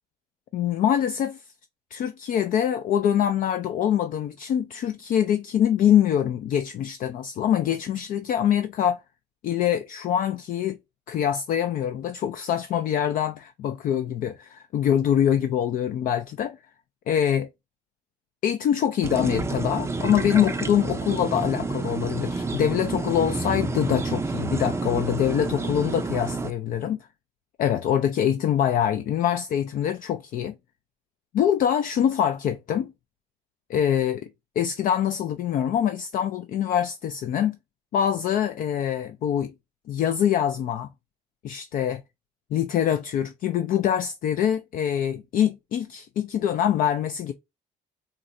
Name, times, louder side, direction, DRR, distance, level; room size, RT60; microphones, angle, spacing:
voice 1, 0.5-1.4 1.9-9.0 9.4-10.8 11.1-16.6 17.1-17.5 18.4-27.0 27.6-30.5 31.3-32.9 33.7-34.3 34.6-37.6 37.9-39.5 39.9-40.9 41.4-42.0 42.5-47.3, left 9 dB, 55° left, 0.4 m, -24 dB
sound 1, 19.0-26.5, right 3 dB, 15° right, 0.4 m, -29 dB
3.7 x 2.1 x 2.5 m
cardioid pair, 110°, 17 cm